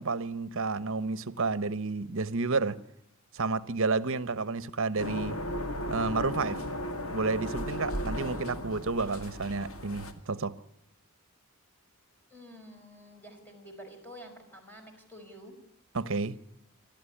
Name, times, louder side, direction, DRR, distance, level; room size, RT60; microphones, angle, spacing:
voice 1, 0.0-2.8 3.3-5.4 5.9-6.6 7.1-10.5 15.9-16.4, right 3 dB, 65° right, 1.0 m, -31 dB
sound 1, 5.0-10.1, left 1 dB, 75° left, 2.3 m, -35 dB
voice 2, 12.3-15.6, equal, 10° left, 5.1 m, -49 dB
27.5 x 12.0 x 10.0 m
head